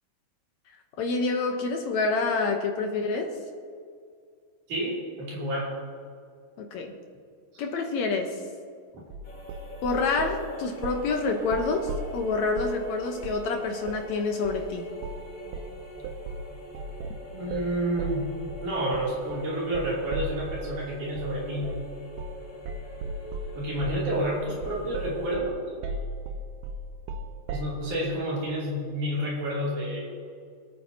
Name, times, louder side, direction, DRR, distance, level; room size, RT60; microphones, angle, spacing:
voice 1, 1.0-3.3 6.6-6.9 7.6-8.4 9.8-14.9, left 3 dB, 70° left, 3 dB, 2.0 m, -27 dB
voice 2, 4.7-5.7 7.5-7.6 17.3-18.3 18.6-21.8 23.6-25.6 27.5-30.1, equal, 70° right, -6 dB, 4.4 m, -29 dB
sound 1, 9.1-10.4 10.8-11.1 11.4-12.8 13.2-13.5 13.8-14.1 14.4-14.7 15.0-15.3 15.5-20.8 21.2-21.4 21.6-21.9 22.2-22.4 22.7-27.8, right 2 dB, 90° right, 2.3 m, -36 dB
sound 2, 9.2-25.4, equal, 25° left, 0.9 m, -43 dB
26.0 x 9.2 x 2.8 m, 2.1 s
omnidirectional pair, 3.7 m